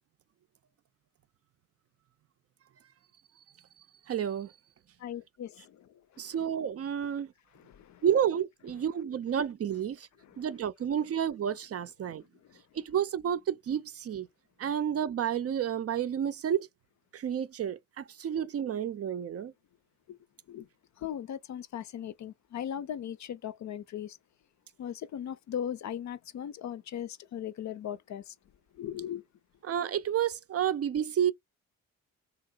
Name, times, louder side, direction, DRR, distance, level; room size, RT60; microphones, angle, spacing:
voice 1, 4.1-4.5 6.2-7.3 8.0-10.1 10.4-12.2 12.7-14.3 14.6-16.7 17.1-19.5 29.7-31.3, right 9 dB, 45° right, 0.5 m, -30 dB
voice 2, 5.0-5.9 7.7-8.0 10.3-10.4 20.1-20.2 20.5-20.7 21.0-24.2 24.8-28.3 28.8-29.2, left 9 dB, 55° left, 0.5 m, -38 dB
2.9 x 2.8 x 2.4 m
supercardioid pair, 55°, 35 cm